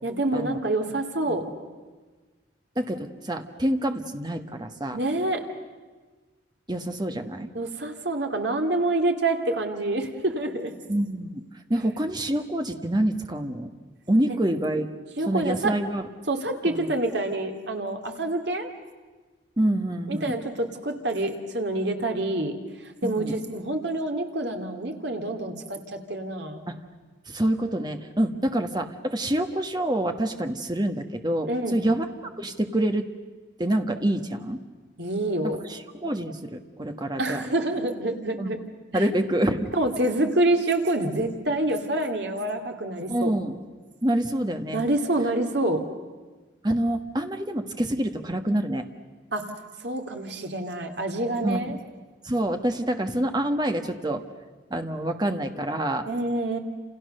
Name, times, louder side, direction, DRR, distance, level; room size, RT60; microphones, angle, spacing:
voice 1, 0.0-1.4 4.9-5.4 7.5-10.7 15.2-15.7 16.3-18.7 20.1-22.5 22.8-26.6 31.5-31.8 35.0-35.6 37.2-38.6 38.9-39.0 39.7-43.3 44.7-45.8 49.3-49.4 49.8-51.7 56.1-56.6, right 2 dB, 65° right, 4 dB, 2.5 m, -27 dB
voice 2, 2.7-5.0 6.7-7.5 10.9-11.4 11.7-13.7 14.1-14.9 15.3-16.0 16.6-16.9 19.6-20.3 23.0-23.4 26.7-26.8 27.3-33.1 33.6-34.6 35.7-37.4 38.4-38.6 38.9-39.7 43.1-43.6 44.0-44.8 46.6-48.9 51.4-51.8 52.2-54.2 54.7-56.1, right 1 dB, 20° right, 6 dB, 1.4 m, -26 dB
29.5 x 28.0 x 6.7 m, 1.3 s
head